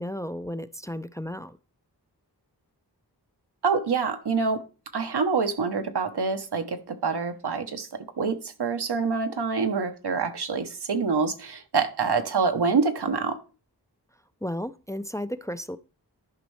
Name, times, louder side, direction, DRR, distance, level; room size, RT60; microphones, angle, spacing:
voice 1, 0.0-1.6 14.4-15.8, left 1 dB, 10° left, 0.4 m, -33 dB
voice 2, 3.6-4.6 4.9-7.9 8.2-13.4, right 5 dB, 75° right, 1.0 m, -26 dB
11.0 x 5.2 x 3.2 m
cardioid pair, 45°, 40 cm